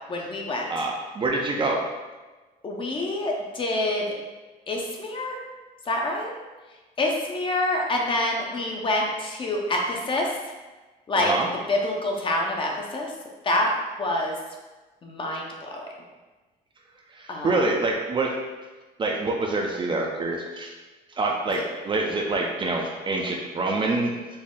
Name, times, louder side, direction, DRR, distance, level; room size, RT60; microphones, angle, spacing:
voice 1, 0.1-0.7 2.6-4.1 4.7-5.4 5.9-6.3 7.0-10.3 11.1-11.3 11.7-13.1 13.4-13.7 14.0-14.3 15.0-15.8 17.3-17.6 21.6-21.7, left 1 dB, 30° left, 0 dB, 0.7 m, -26 dB
voice 2, 0.7-1.8 11.1-11.5 17.1-18.3 19.0-20.7 21.2-24.1, right 2 dB, 30° right, 0 dB, 0.5 m, -26 dB
4.2 x 2.0 x 3.7 m, 1.2 s
cardioid pair, 110°, 17 cm